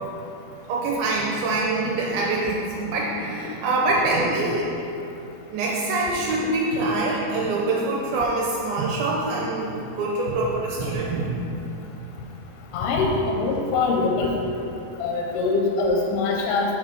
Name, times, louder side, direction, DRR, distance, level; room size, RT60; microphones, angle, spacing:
voice 1, 0.7-4.7 5.5-11.6, right 2 dB, 80° right, -4 dB, 2.4 m, -25 dB
voice 2, 12.7-14.3 15.0-16.7, left 3 dB, 85° left, 0 dB, 2.4 m, -23 dB
7.3 x 3.5 x 5.2 m, 2.7 s
omnidirectional pair, 4.3 m